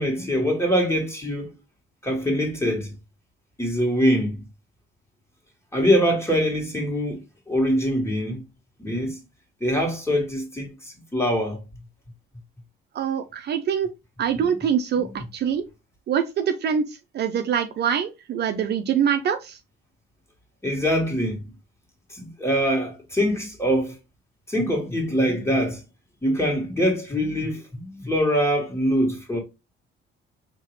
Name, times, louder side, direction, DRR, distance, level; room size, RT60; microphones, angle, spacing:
voice 1, 0.0-1.5 2.0-2.9 3.6-4.4 5.7-7.2 7.5-8.4 8.8-9.2 9.6-11.6 15.0-15.2 20.6-21.5 22.1-23.9 24.5-25.8 26.2-29.4, equal, 10° left, 1.9 m, -23 dB
voice 2, 12.9-13.9 14.2-15.7 16.1-19.6, right 8 dB, 50° right, 0.5 m, -24 dB
4.6 x 2.9 x 3.1 m
cardioid pair, 90°, 21 cm